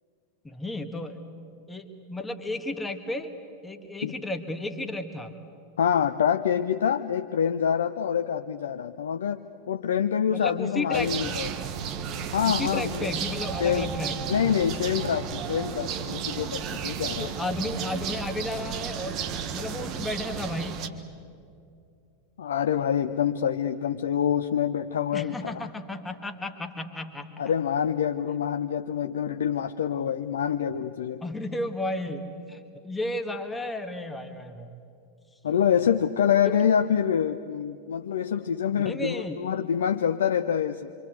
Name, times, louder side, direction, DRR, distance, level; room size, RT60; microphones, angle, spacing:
voice 1, 0.4-1.2 1.7-3.3 3.6-5.3 10.3-11.4 12.4-14.3 17.2-19.2 19.5-20.8 25.1-27.3 31.2-34.8 36.4-36.6 38.9-39.4, left 2 dB, 10° left, 6 dB, 1.9 m, -33 dB
voice 2, 5.8-9.4 9.7-11.5 12.3-13.1 13.6-13.9 14.3-17.3 22.4-25.7 27.4-31.2 35.4-40.9, left 8 dB, 65° left, 7 dB, 0.7 m, -26 dB
sound 1, 10.9-20.9, right 7 dB, 35° right, 1.6 m, -33 dB
26.0 x 26.0 x 8.1 m, 2.5 s
figure-of-eight pair, 90°, 0 cm